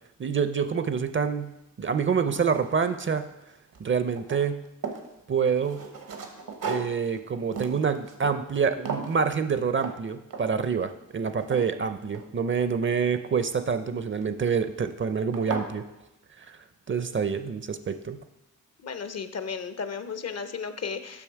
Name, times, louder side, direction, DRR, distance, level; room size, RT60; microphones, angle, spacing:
voice 1, 0.2-3.3 3.8-4.6 5.3-5.8 6.6-15.8 16.4-16.6 16.9-18.2, right 6 dB, 40° right, 10 dB, 0.5 m, -27 dB
sound 1, 1.4-1.5 2.0-3.4 3.7-5.1 5.6-8.6 8.9-9.2 9.8-10.0 10.3-10.7 11.1-12.7 14.1-14.5 15.0-15.1 15.3-15.7, right 5 dB, 80° right, 1.1 m, -37 dB
voice 2, 18.8-21.2, left 5 dB, 50° left, 11 dB, 0.6 m, -34 dB
7.0 x 5.9 x 4.6 m, 0.90 s
cardioid pair, 65°, 32 cm